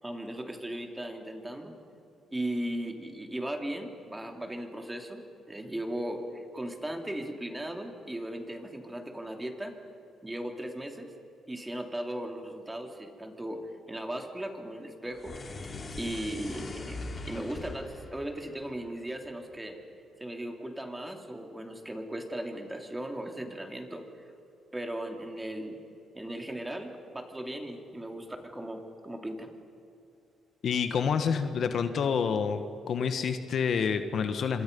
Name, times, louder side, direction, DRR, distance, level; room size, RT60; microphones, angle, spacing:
voice 1, 0.0-1.7 2.3-9.7 10.2-11.1 11.5-13.6 13.9-15.3 16.0-19.8 20.2-24.3 24.7-25.8 26.1-29.5, right 1 dB, 10° right, 3 dB, 3.1 m, -37 dB
sound 1, 15.1-19.5, left 3 dB, 35° left, 3.2 m, -42 dB
voice 2, 30.6-32.6 32.9-34.6, left 6 dB, 60° left, 8 dB, 1.4 m, -28 dB
26.5 x 26.0 x 5.4 m, 2.7 s
cardioid pair, 90°, 0 cm